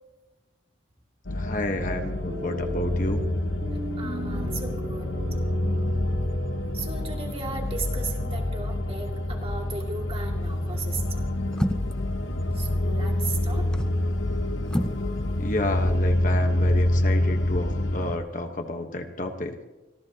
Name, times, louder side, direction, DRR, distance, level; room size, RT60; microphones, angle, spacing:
sound 1, 1.3-18.2, left 1 dB, 80° left, 1.1 m, -27 dB
voice 1, 1.3-3.3 15.4-19.6, left 1 dB, 45° left, 5 dB, 1.1 m, -31 dB
sound 2, 1.7-9.2, right 1 dB, 50° right, 2.4 m, -38 dB
voice 2, 4.0-5.1 6.7-11.3 12.5-13.7, right 4 dB, 30° right, 1 dB, 2.3 m, -36 dB
sound 3, 10.4-10.7 11.5-12.1 13.5-14.0 14.7-15.1 15.3-15.4, equal, 5° left, 0.5 m, -29 dB
26.0 x 14.0 x 2.9 m, 1.1 s
head